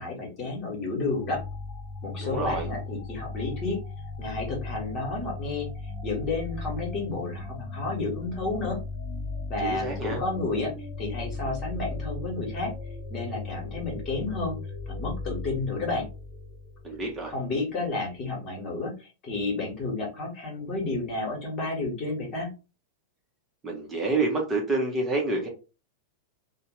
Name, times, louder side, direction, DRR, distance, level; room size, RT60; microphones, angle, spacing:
voice 1, 0.0-1.4 2.0-3.8 4.2-8.8 9.5-10.7 11.0-12.7 13.1-14.6 14.9-16.0 17.3-22.5, left 3 dB, 35° left, 0 dB, 1.3 m, -31 dB
sound 1, 1.2-17.5, left 3 dB, 15° left, 1.0 m, -37 dB
voice 2, 2.2-2.7 9.6-10.2 16.8-17.3 23.6-25.5, right 2 dB, 15° right, 0 dB, 0.8 m, -28 dB
2.7 x 2.1 x 3.0 m, 0.31 s
figure-of-eight pair, 90°, 0 cm